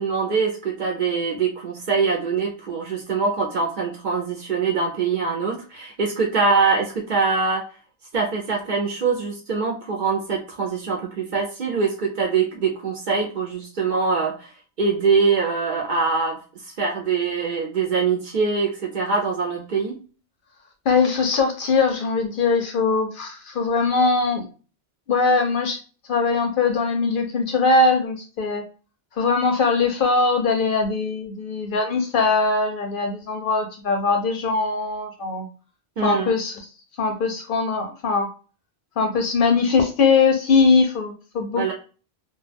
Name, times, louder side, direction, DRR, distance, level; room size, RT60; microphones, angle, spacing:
voice 1, 0.0-7.6 8.1-14.5 14.8-16.4 16.7-20.0 36.0-36.3 41.6-41.7, right 4 dB, 55° right, 1 dB, 0.6 m, -23 dB
voice 2, 20.9-24.5 25.1-25.8 26.1-28.6 29.2-35.5 36.0-36.6 37.0-38.3 39.0-41.6, left 4 dB, 60° left, 4 dB, 0.6 m, -21 dB
2.2 x 2.2 x 3.3 m, 0.36 s
omnidirectional pair, 1.1 m